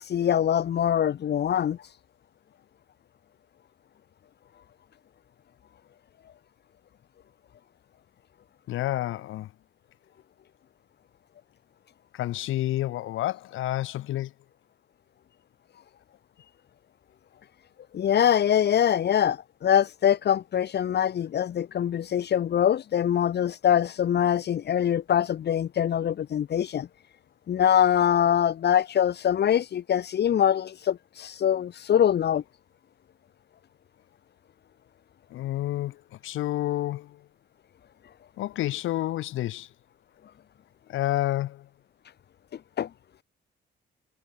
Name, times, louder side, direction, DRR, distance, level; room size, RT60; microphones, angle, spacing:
voice 1, 0.0-1.8 17.9-26.9 27.5-32.4 42.8-42.9, left 9 dB, 55° left, 1.4 m, -23 dB
voice 2, 8.7-9.5 12.1-14.3 35.3-37.2 38.4-39.7 40.9-41.7, left 14 dB, 85° left, 2.4 m, -29 dB
cardioid pair, 90°, 20 cm